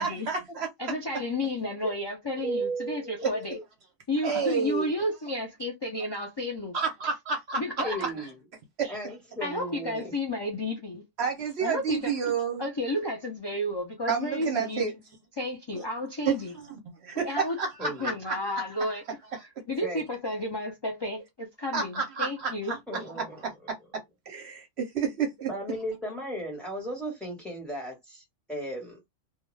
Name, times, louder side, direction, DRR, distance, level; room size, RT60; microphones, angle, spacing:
voice 1, 0.0-0.9 3.2-3.3 4.2-4.9 6.7-8.3 8.8-9.1 11.2-12.7 14.1-14.9 15.7-15.8 16.3-19.0 19.3-19.4 21.7-23.8 24.3-25.5, right 6 dB, 60° right, 0.8 m, -30 dB
voice 2, 0.8-3.6 4.1-6.7 7.5-8.0 8.8-9.0 9.4-11.0 11.6-12.1 12.6-14.9 15.4-16.5 17.2-17.6 18.0-19.0 19.7-23.0, left 1 dB, 45° left, 0.3 m, -32 dB
voice 3, 2.4-3.6 7.8-8.3 8.9-10.1 17.8-18.2 19.8-20.0 22.9-23.5 25.5-29.0, right 1 dB, ahead, 1.1 m, -35 dB
2.4 x 2.2 x 3.1 m
omnidirectional pair, 1.3 m